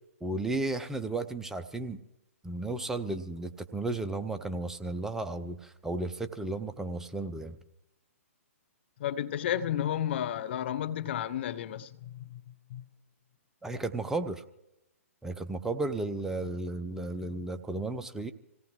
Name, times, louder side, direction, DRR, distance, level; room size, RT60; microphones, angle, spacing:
voice 1, 0.2-2.0 2.4-7.6 13.6-14.4 15.2-18.3, right 2 dB, 5° right, 0.6 m, -34 dB
voice 2, 9.0-12.4 12.7-12.8, left 10 dB, 45° left, 0.7 m, -32 dB
26.5 x 17.5 x 3.1 m
hypercardioid pair, 130°, 8 cm